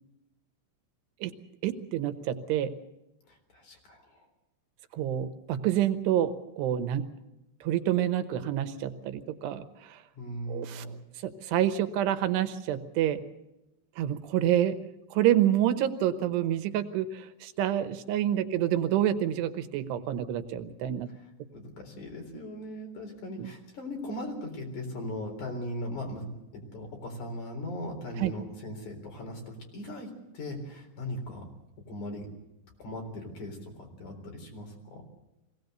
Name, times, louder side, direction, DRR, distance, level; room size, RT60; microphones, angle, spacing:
voice 1, 1.6-2.7 4.9-7.1 7.6-10.0 10.5-13.2 14.0-14.8 15.1-21.1 23.4-23.5 28.2-28.3, right 11 dB, 85° right, 10 dB, 3.2 m, -28 dB
voice 2, 3.3-4.3 10.2-11.0 21.5-26.3 26.5-31.5 31.9-32.3 32.8-35.1, left 1 dB, 50° left, 3 dB, 5.2 m, -39 dB
23.5 x 17.5 x 8.0 m, 0.93 s
omnidirectional pair, 4.8 m